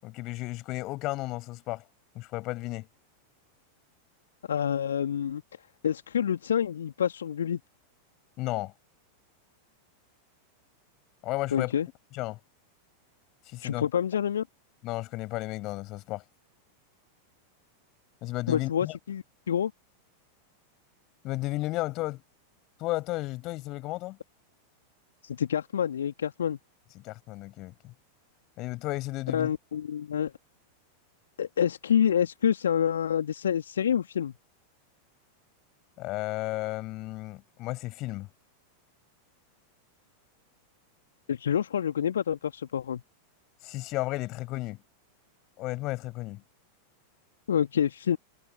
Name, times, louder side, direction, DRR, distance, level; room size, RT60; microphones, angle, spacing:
voice 1, 0.0-1.8 2.1-2.9 8.4-8.7 11.2-11.7 12.1-12.4 13.5-13.9 14.8-16.2 18.2-19.0 21.2-22.2 22.8-24.2 27.0-27.9 28.6-29.5 36.0-38.3 43.6-44.8 45.6-46.4, left 19 dB, 40° left, 7.6 m, -33 dB
voice 2, 4.5-5.4 5.8-7.6 11.5-11.9 13.6-14.4 18.5-19.7 25.2-26.6 29.3-30.3 31.4-34.3 41.3-43.0 47.5-48.2, left 8 dB, 65° left, 2.3 m, -27 dB
figure-of-eight pair, 90°, 0 cm